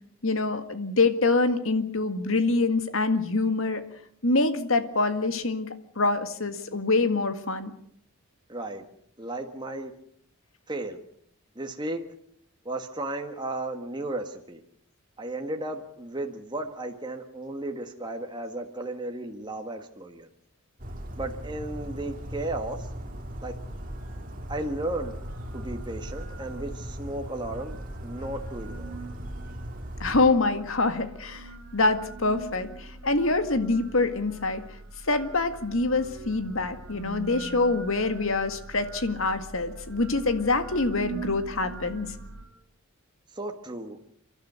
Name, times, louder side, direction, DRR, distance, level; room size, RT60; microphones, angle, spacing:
voice 1, 0.2-3.8 4.2-5.7 6.0-7.7 30.0-31.5 31.7-34.6 35.1-42.1, left 3 dB, 70° left, 9 dB, 1.9 m, -25 dB
voice 2, 8.5-8.8 9.2-9.9 10.7-11.0 11.6-12.0 12.7-14.6 15.2-20.3 21.2-22.9 23.4-23.5 24.5-25.2 25.5-29.0 43.3-44.0, right 2 dB, 20° right, 3 dB, 1.6 m, -34 dB
Bird vocalization bird call bird song, 20.8-30.3, equal, 40° right, 2.5 m, -38 dB
sound 1, 23.7-42.4, right 3 dB, 60° right, 3.3 m, -43 dB
30.0 x 12.0 x 8.1 m, 0.68 s
head